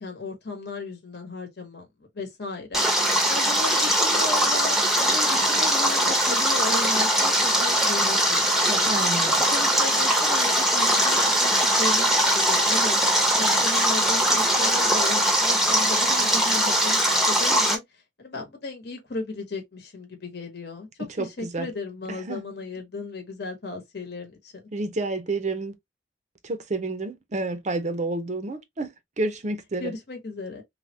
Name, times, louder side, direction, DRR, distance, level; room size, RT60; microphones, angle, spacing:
voice 1, 0.0-1.9 2.1-2.8 3.3-8.9 9.5-11.5 11.8-13.0 13.3-20.9 21.2-24.5 29.8-30.6, left 3 dB, 55° left, 1.0 m, -35 dB
Stream, 2.7-17.8, equal, ahead, 0.7 m, -21 dB
voice 2, 8.9-9.4 21.0-21.7 22.1-22.4 24.7-25.7 26.4-29.9, right 2 dB, 40° right, 0.6 m, -30 dB
3.3 x 2.2 x 2.7 m
head